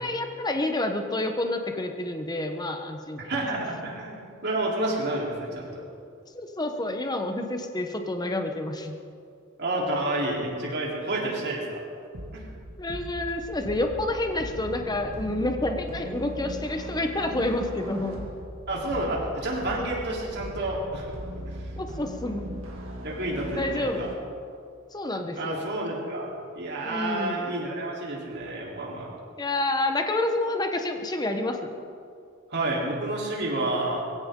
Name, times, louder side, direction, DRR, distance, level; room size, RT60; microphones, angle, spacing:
voice 1, 0.0-3.2 6.3-9.0 12.8-18.2 21.8-22.5 23.5-24.1 24.9-25.6 26.8-27.4 29.4-31.6, left 2 dB, 20° left, 5 dB, 1.1 m, -29 dB
voice 2, 3.2-5.8 9.6-11.8 12.3-12.4 18.7-21.1 21.5-21.7 22.4-22.5 23.0-24.1 25.4-29.1 32.5-34.0, right 1 dB, 55° right, -3 dB, 3.7 m, -30 dB
sound 1, 12.1-24.1, equal, 70° right, 2.5 m, -39 dB
22.5 x 16.0 x 3.8 m, 2.4 s
head